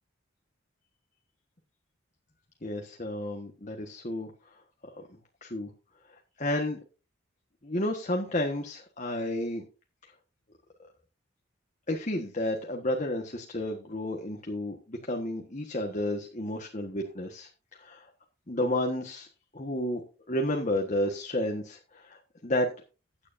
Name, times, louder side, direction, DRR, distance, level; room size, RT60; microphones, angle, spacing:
voice 1, 2.6-4.3 5.4-5.7 6.4-6.8 7.6-9.6 11.9-18.1 18.5-19.3 19.5-22.7, left 1 dB, 35° left, 3 dB, 1.4 m, -31 dB
15.5 x 9.7 x 2.7 m, 0.32 s
head